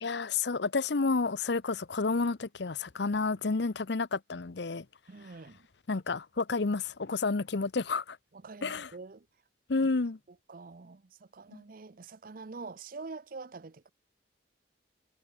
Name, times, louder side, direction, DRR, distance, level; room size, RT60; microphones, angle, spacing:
voice 1, 0.0-4.8 5.9-8.2 8.6-8.9 9.7-10.2 11.5-11.6, left 4 dB, 65° left, 0.7 m, -30 dB
voice 2, 5.1-5.7 8.3-9.3 10.3-13.9, right 4 dB, 50° right, 0.6 m, -46 dB
head